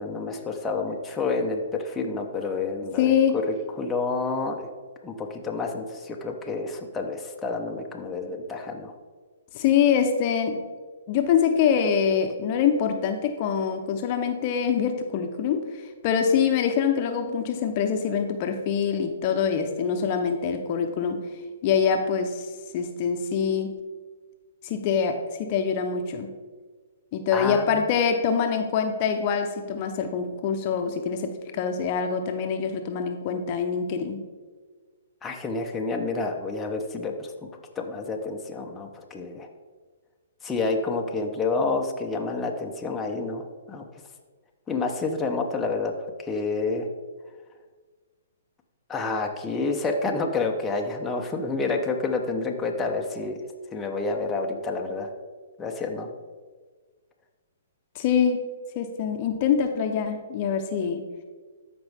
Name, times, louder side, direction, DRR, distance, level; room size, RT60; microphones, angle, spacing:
voice 1, 0.0-3.4 3.8-4.7 5.0-8.9 27.3-27.6 35.2-37.3 37.8-39.5 40.4-43.8 44.7-45.9 46.2-46.9 48.9-53.4 53.7-55.1 55.6-56.1, left 3 dB, 15° left, 1 dB, 0.9 m, -29 dB
voice 2, 3.0-3.4 9.5-10.6 11.1-21.2 21.6-22.5 22.7-23.7 24.6-26.3 27.1-34.2 57.9-58.4 58.8-61.0, left 7 dB, 40° left, 5 dB, 0.9 m, -24 dB
13.5 x 5.2 x 3.6 m, 1.4 s
hypercardioid pair, 130°, 0 cm